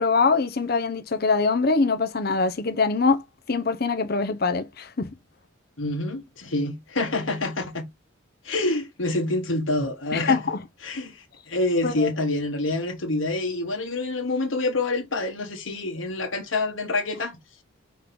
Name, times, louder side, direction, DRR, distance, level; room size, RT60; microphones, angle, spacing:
voice 1, 0.0-5.1 10.1-10.6 11.8-12.1, left 4 dB, 50° left, 0.7 m, -23 dB
voice 2, 5.8-7.9 8.4-10.4 10.8-17.4, left 2 dB, 80° left, 1.5 m, -27 dB
5.5 x 3.7 x 5.9 m
head